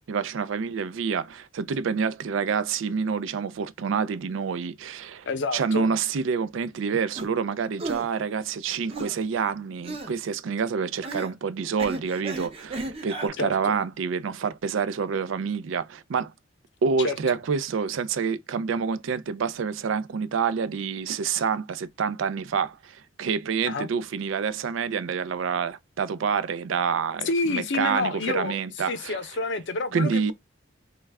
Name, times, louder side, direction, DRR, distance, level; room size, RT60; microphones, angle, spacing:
voice 1, 0.1-5.3 5.5-16.3 16.8-29.2 29.9-30.3, right 6 dB, 70° right, 0.4 m, -27 dB
voice 2, 5.2-5.9 13.4-13.7 17.0-17.4 23.7-23.9 27.2-30.3, left 3 dB, 65° left, 0.7 m, -29 dB
sound 1, 7.1-7.3 7.8-8.1 8.9-9.2 9.8-10.1 11.0-11.3 11.8-13.3, right 2 dB, 30° right, 0.6 m, -34 dB
3.1 x 2.3 x 3.4 m
head